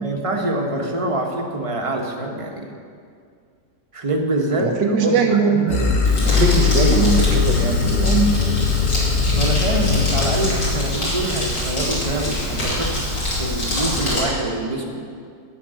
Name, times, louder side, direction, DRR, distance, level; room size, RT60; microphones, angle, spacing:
voice 1, 0.0-2.7 3.9-5.9 9.3-15.0, right 1 dB, 20° right, 1 dB, 1.1 m, -25 dB
voice 2, 4.6-5.8 6.2-8.3, right 5 dB, 75° right, 4 dB, 1.7 m, -20 dB
sound 1, 5.7-10.9, left 6 dB, 45° left, 0.5 m, -20 dB
Crumpling crinkling, 6.0-14.2, equal, 80° left, 3.5 m, -25 dB
11.5 x 6.1 x 8.8 m, 2.2 s
omnidirectional pair, 1.8 m